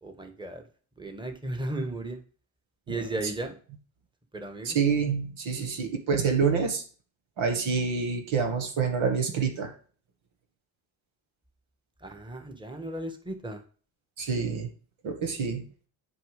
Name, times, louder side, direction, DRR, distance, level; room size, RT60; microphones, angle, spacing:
voice 1, 0.0-0.6 1.0-2.2 2.9-3.6 4.3-4.8 12.0-13.6, right 2 dB, 10° right, 6 dB, 1.5 m, -35 dB
voice 2, 4.6-6.8 7.4-9.7 14.2-14.7 15.0-15.6, right 5 dB, 70° right, 4 dB, 1.6 m, -27 dB
7.7 x 4.7 x 5.0 m, 0.41 s
supercardioid pair, 55°, 49 cm